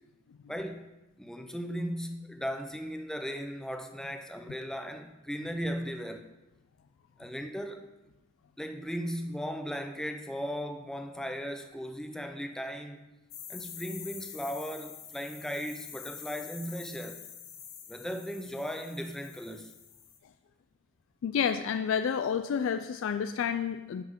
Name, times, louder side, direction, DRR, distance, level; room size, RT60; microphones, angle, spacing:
voice 1, 0.5-0.8 1.2-6.3 7.2-7.9 8.6-13.0 13.5-17.2 17.9-19.7, equal, 5° left, 0.5 m, -37 dB
sound 1, 13.3-20.2, left 8 dB, 90° left, 1.1 m, -46 dB
voice 2, 21.2-24.0, left 7 dB, 70° left, 0.3 m, -29 dB
11.0 x 5.7 x 3.6 m
head